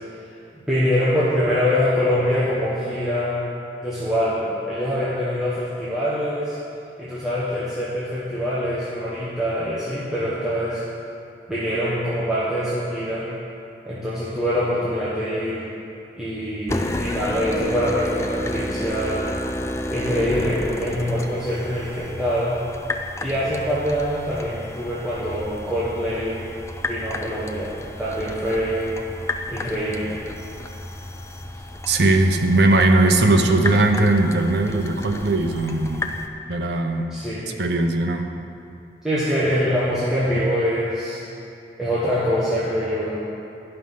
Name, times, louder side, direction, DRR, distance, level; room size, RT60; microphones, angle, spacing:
voice 1, 0.7-3.4 3.8-6.6 7.0-10.8 11.5-13.3 13.8-15.7 16.2-19.3 19.9-22.6 23.2-26.4 26.9-28.9 29.5-30.2 37.1-37.6 39.0-41.2 41.8-43.2, equal, 5° right, -10 dB, 1.1 m, -24 dB
sound 1, 16.7-36.3, left 1 dB, 15° left, 0.3 m, -31 dB
voice 2, 31.9-36.2 36.5-37.1 37.6-38.3, right 2 dB, 70° right, 4 dB, 0.7 m, -19 dB
11.5 x 5.5 x 5.6 m, 2.7 s
head